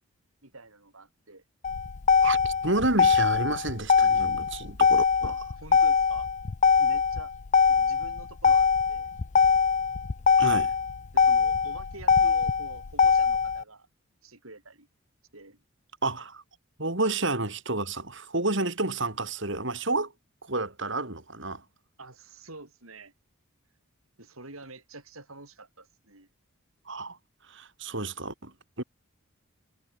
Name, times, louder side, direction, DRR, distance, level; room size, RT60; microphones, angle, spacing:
voice 1, 0.4-1.4 5.2-6.3 6.8-7.3 7.7-9.1 11.1-13.9 14.2-14.9 15.3-15.6 22.0-23.1 24.2-26.3, right 2 dB, 75° right, 7.7 m, -47 dB
Motor vehicle (road), 1.6-13.6, left 6 dB, 35° left, 0.4 m, -22 dB
voice 2, 2.2-5.3 10.4-10.7 16.0-16.4 16.8-20.1 20.4-21.6 26.9-27.2 27.5-28.8, right 2 dB, 55° right, 4.0 m, -30 dB
head